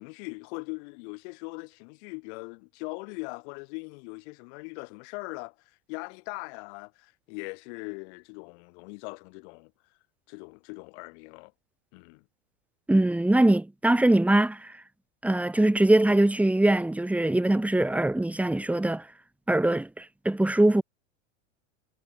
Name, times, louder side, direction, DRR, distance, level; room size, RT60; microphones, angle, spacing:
voice 1, 0.0-5.5 5.9-9.7 10.3-11.5 11.9-12.2, left 32 dB, 55° left, 4.4 m, -40 dB
voice 2, 12.9-14.7 15.2-19.0 19.5-20.8, right 1 dB, 5° right, 2.0 m, -22 dB
supercardioid pair, 125°, 39 cm